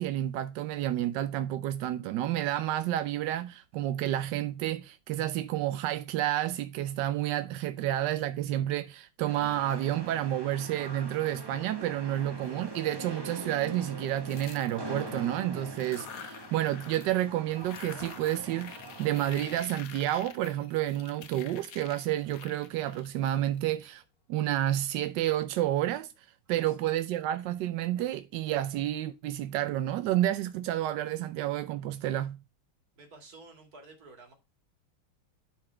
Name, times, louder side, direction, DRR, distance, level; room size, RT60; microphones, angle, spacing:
voice 1, 0.0-24.0 24.3-32.4, right 13 dB, 75° right, 1.0 m, -30 dB
sound 1, 9.2-19.6, right 2 dB, 20° right, 0.7 m, -43 dB
sound 2, 14.2-15.2 15.7-17.2 17.5-23.9, left 8 dB, 60° left, 0.9 m, -48 dB
voice 2, 33.0-34.3, right 3 dB, 45° right, 2.4 m, -51 dB
10.0 x 4.0 x 4.4 m
omnidirectional pair, 2.3 m